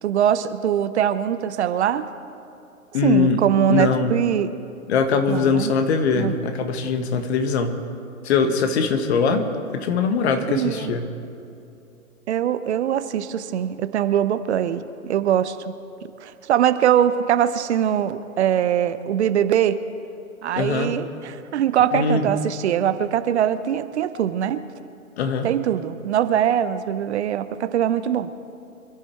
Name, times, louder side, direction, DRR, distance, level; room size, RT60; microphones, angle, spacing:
voice 1, 0.0-2.1 3.0-4.5 5.3-5.7 6.1-6.3 10.5-10.9 12.3-15.6 16.2-19.8 20.4-24.6 25.4-28.3, right 10 dB, 50° right, 12 dB, 0.8 m, -22 dB
voice 2, 2.9-3.4 3.7-4.1 4.9-7.8 8.2-11.1 20.6-20.9 21.9-22.3 25.2-25.5, left 5 dB, 50° left, 7 dB, 1.7 m, -21 dB
25.5 x 12.0 x 4.6 m, 2.6 s
figure-of-eight pair, 120°, 42 cm